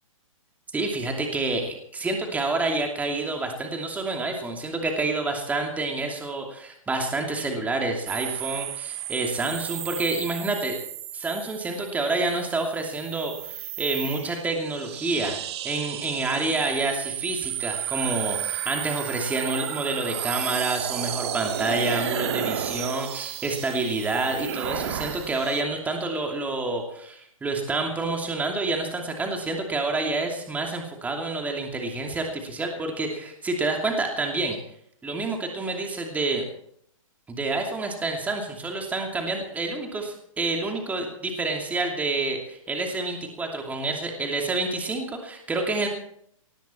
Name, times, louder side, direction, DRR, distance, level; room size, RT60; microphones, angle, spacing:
voice 1, 0.7-10.8 11.1-15.4 15.6-34.6 35.0-36.4 37.3-45.9, right 3 dB, 10° right, 2 dB, 2.7 m, -28 dB
sound 1, 8.1-25.6, right 11 dB, 50° right, 1.8 m, -33 dB
19.5 x 14.5 x 4.4 m, 0.68 s
hypercardioid pair, 140°, 18 cm